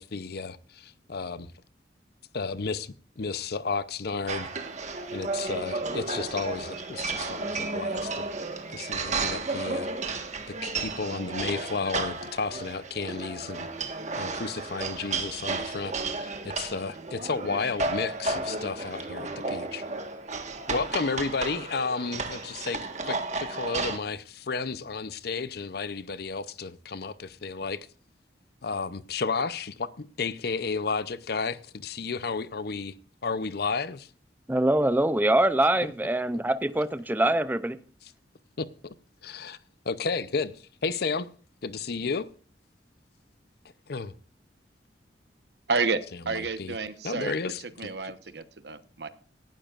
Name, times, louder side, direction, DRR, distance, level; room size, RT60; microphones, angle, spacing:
voice 1, 0.0-1.5 2.3-4.5 5.1-8.3 8.7-10.3 10.6-19.9 20.7-27.9 28.6-32.9 33.2-34.1 38.6-38.7 39.2-39.6 39.8-41.3 41.6-42.3 43.9-44.1 46.3-46.8 47.0-48.1, left 4 dB, 60° left, 0.6 m, -32 dB
sound 1, 4.3-24.0, right 3 dB, 40° right, 1.5 m, -33 dB
voice 2, 34.5-37.8, right 1 dB, 10° right, 0.5 m, -24 dB
voice 3, 45.7-47.3 47.8-49.1, right 4 dB, 65° right, 1.0 m, -30 dB
18.0 x 12.0 x 2.5 m
head